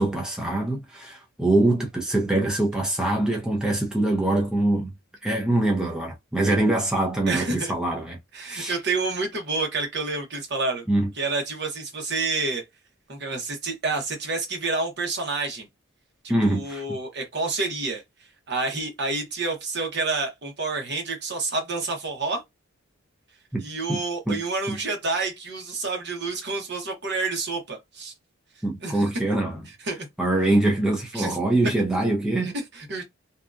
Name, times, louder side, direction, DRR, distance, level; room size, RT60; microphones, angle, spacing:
voice 1, 0.0-4.9 5.2-8.8 10.9-11.1 16.3-16.8 23.5-23.6 23.9-24.4 24.7-24.8 28.6-29.6 30.2-32.5, right 2 dB, 5° right, 0.5 m, -24 dB
voice 2, 7.3-7.7 8.3-10.8 11.2-12.6 13.1-15.7 16.2-18.0 18.5-22.4 23.6-28.1 28.8-29.0 29.9-30.1 31.1-31.4 32.4-33.0, right 3 dB, 55° right, 0.9 m, -29 dB
2.7 x 2.3 x 2.4 m
head